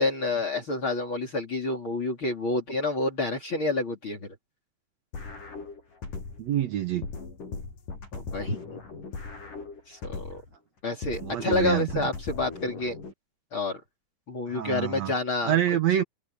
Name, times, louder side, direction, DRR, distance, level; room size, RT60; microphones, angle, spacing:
voice 1, 0.0-4.4 8.1-8.6 9.9-10.4 10.8-13.0 13.5-13.8 14.3-15.6, left 2 dB, 35° left, 3.7 m, -28 dB
sound 1, 5.1-6.6 7.0-10.6 11.0-13.1, left 4 dB, 60° left, 7.9 m, -39 dB
voice 2, 6.4-7.1 11.2-12.1 14.5-15.1 15.4-16.0, right 11 dB, 75° right, 1.6 m, -26 dB
open air
omnidirectional pair, 4.4 m